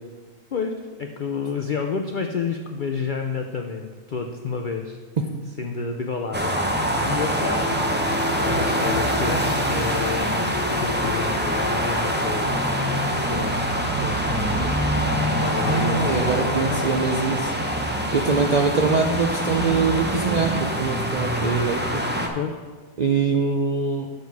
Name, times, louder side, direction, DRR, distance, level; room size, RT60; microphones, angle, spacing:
voice 1, 1.0-5.0 5.6-13.6 13.9-16.8 22.3-22.6, left 5 dB, 70° left, 4 dB, 0.4 m, -30 dB
sound 1, 6.3-22.3, equal, 15° right, 0.4 m, -24 dB
voice 2, 15.7-17.5 18.1-22.0 23.0-24.1, right 4 dB, 85° right, 2 dB, 0.3 m, -23 dB
7.3 x 6.5 x 4.6 m, 1.4 s
omnidirectional pair, 1.4 m